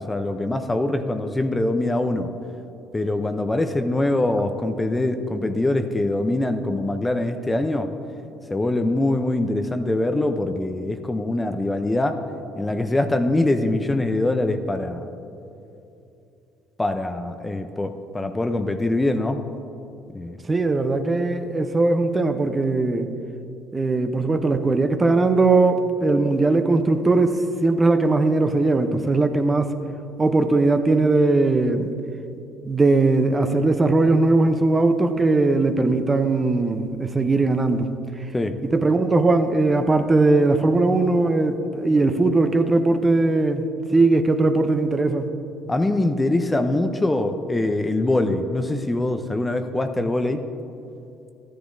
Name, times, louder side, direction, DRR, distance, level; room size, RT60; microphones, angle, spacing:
voice 1, 0.0-2.3 2.9-7.9 8.5-12.2 12.6-15.1 16.8-19.4 20.1-20.4 38.3-38.6 45.7-50.4, left 2 dB, 15° left, 7 dB, 0.6 m, -23 dB
voice 2, 20.5-23.1 23.7-29.7 30.2-31.9 32.7-37.8 38.6-43.6 43.9-45.2, right 3 dB, 25° right, 8 dB, 0.7 m, -19 dB
13.5 x 10.0 x 2.7 m, 2.8 s
supercardioid pair, 85°, 0 cm